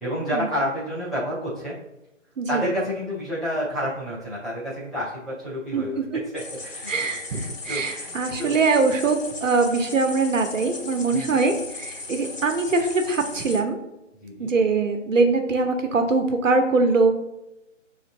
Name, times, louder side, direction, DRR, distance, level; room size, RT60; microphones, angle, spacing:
voice 1, 0.0-1.7 2.5-6.9 7.4-8.6 11.1-11.3 14.2-14.5, equal, ahead, -11 dB, 0.4 m, -29 dB
voice 2, 5.7-6.2 6.9-13.8 14.4-17.1, right 3 dB, 80° right, 5 dB, 0.8 m, -22 dB
sound 1, 6.4-13.6, left 3 dB, 85° left, 1.1 m, -37 dB
6.3 x 2.5 x 2.5 m, 0.91 s
figure-of-eight pair, 155°, 38 cm